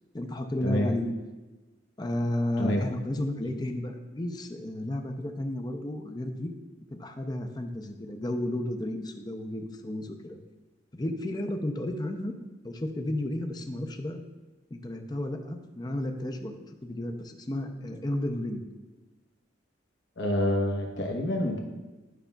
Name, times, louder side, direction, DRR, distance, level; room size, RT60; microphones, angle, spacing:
voice 1, 0.1-1.1 2.0-6.5 6.9-10.4 10.9-12.3 12.6-14.2 14.7-16.5 16.8-18.6, left 1 dB, 20° left, 5 dB, 0.5 m, -32 dB
voice 2, 20.2-21.6, left 1 dB, 70° left, 1 dB, 1.1 m, -27 dB
11.5 x 5.5 x 2.3 m, 1.2 s
head